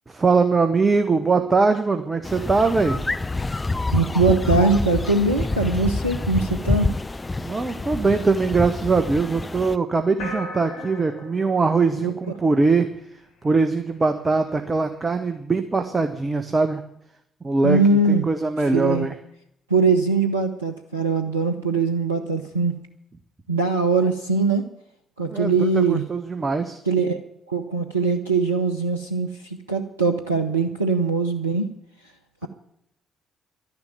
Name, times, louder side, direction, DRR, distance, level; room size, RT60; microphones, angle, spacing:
voice 1, 0.1-3.0 7.4-12.9 13.4-16.8 17.4-19.1 25.3-26.8, right 4 dB, 30° right, 7 dB, 1.3 m, -22 dB
sound 1, 2.2-9.8, left 2 dB, 20° left, 0.6 m, -27 dB
voice 2, 3.9-6.9 12.0-12.1 17.6-18.2 18.7-19.1 19.7-22.7 23.5-24.7 25.2-26.0 26.9-27.2 27.5-31.7, right 4 dB, 85° right, 5 dB, 0.6 m, -21 dB
sound 2, 10.2-12.8, left 2 dB, 70° left, 2.4 m, -36 dB
12.0 x 10.5 x 9.4 m, 0.75 s
figure-of-eight pair, 40°, 0 cm